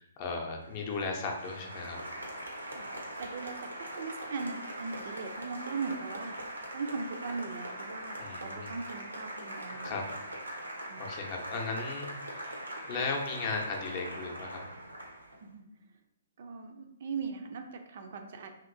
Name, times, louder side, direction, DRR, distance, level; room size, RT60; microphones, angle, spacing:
voice 1, 0.0-2.0 8.2-8.7 9.8-10.0 11.0-12.1 12.8-14.6, left 4 dB, 35° left, 1 dB, 0.6 m, -36 dB
Applause, 0.6-15.4, right 1 dB, 90° right, 0.7 m, -42 dB
voice 2, 2.6-6.4 6.7-10.1 10.9-11.2 15.4-15.7 16.4-18.6, right 4 dB, 55° right, 6 dB, 0.4 m, -39 dB
2.9 x 2.8 x 2.6 m, 0.82 s
figure-of-eight pair, 130°, 0 cm